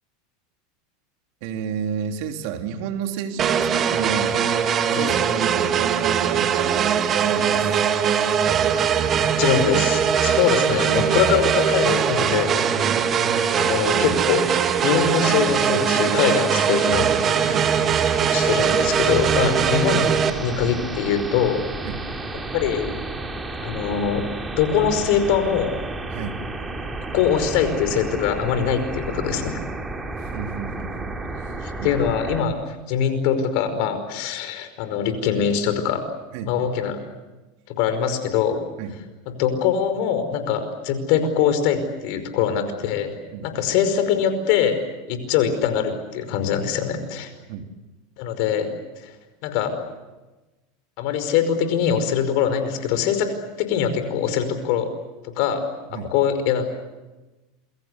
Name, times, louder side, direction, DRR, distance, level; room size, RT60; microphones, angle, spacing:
voice 1, 1.4-7.8 12.8-13.0 17.4-17.7 21.8-22.0 26.1-26.4 30.2-32.0 36.3-36.5 38.8-38.9 43.3-43.5 47.5-47.7 55.9-56.1, right 8 dB, 65° right, 5 dB, 3.3 m, -31 dB
sound 1, 3.4-20.3, right 8 dB, 35° right, 2.3 m, -21 dB
voice 2, 9.2-12.7 13.6-14.5 14.8-17.5 18.3-21.6 22.5-22.9 23.6-24.3 24.6-25.8 27.1-29.6 31.6-36.0 36.4-37.0 37.7-38.7 39.4-44.8 45.1-47.3 48.2-49.1 49.4-49.8 51.0-54.9 55.2-55.6 55.9-56.6, left 8 dB, 60° left, 9 dB, 5.2 m, -23 dB
sound 2, 12.5-32.4, right 2 dB, 15° right, 4.5 m, -32 dB
28.5 x 23.0 x 8.2 m, 1.1 s
hypercardioid pair, 95°, 0 cm